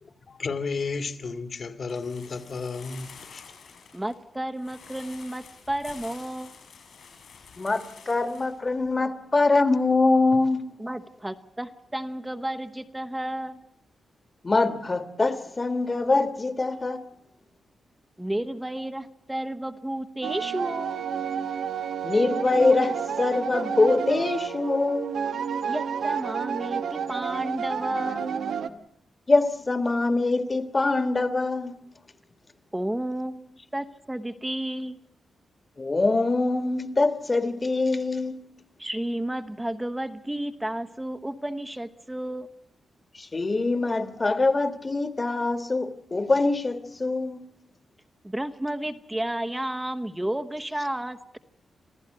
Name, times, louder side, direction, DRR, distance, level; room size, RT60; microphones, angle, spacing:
voice 1, 0.0-3.4, left 4 dB, 55° left, 2.1 m, -33 dB
sound 1, 1.9-8.6 8.8-8.9, left 6 dB, 80° left, 5.9 m, -48 dB
voice 2, 3.9-6.5 10.8-13.6 18.2-21.0 25.7-28.4 32.7-35.0 38.8-42.5 48.2-51.4, right 1 dB, 10° right, 1.0 m, -32 dB
voice 3, 7.6-10.6 14.4-17.0 22.0-25.1 29.3-31.7 35.8-38.3 43.1-47.4, left 3 dB, 30° left, 1.6 m, -24 dB
sound 2, 20.2-28.7, right 7 dB, 80° right, 1.2 m, -30 dB
26.5 x 15.0 x 7.9 m
cardioid pair, 105°, 0 cm